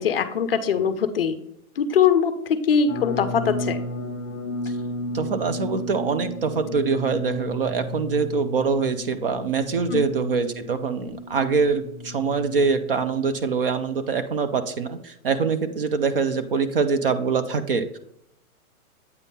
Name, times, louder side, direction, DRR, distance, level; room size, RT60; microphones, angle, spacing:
voice 1, 0.0-1.4 1.8-3.8 9.9-10.0, left 7 dB, 45° left, 11 dB, 0.5 m, -22 dB
sound 1, 2.9-13.8, left 1 dB, 10° left, 0.7 m, -34 dB
voice 2, 5.1-18.0, right 5 dB, 45° right, 11 dB, 0.4 m, -24 dB
8.2 x 3.5 x 4.1 m, 0.77 s
hypercardioid pair, 165°, 42 cm